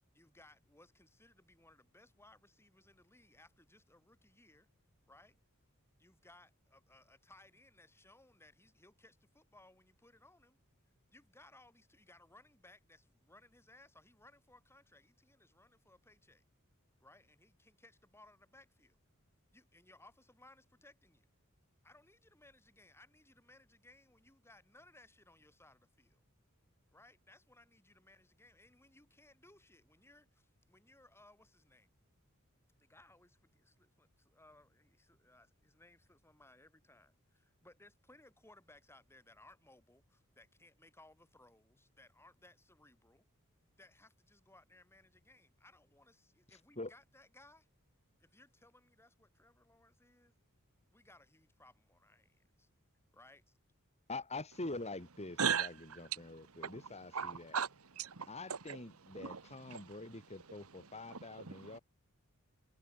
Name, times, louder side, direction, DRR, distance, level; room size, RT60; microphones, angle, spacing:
voice 1, 0.1-4.7 5.1-5.4 6.0-10.6 11.1-16.4 17.0-19.0 19.5-21.3 21.8-26.2 26.9-31.9 32.8-43.3 43.8-47.7 48.2-50.3 50.9-52.7 53.1-53.6, left 2 dB, 10° left, 7.6 m, -63 dB
voice 2, 54.1-55.7 56.0-57.6 58.3-61.8, left 2 dB, 30° left, 3.8 m, -45 dB
voice 3, 55.4-61.8, right 7 dB, 75° right, 1.3 m, -40 dB
head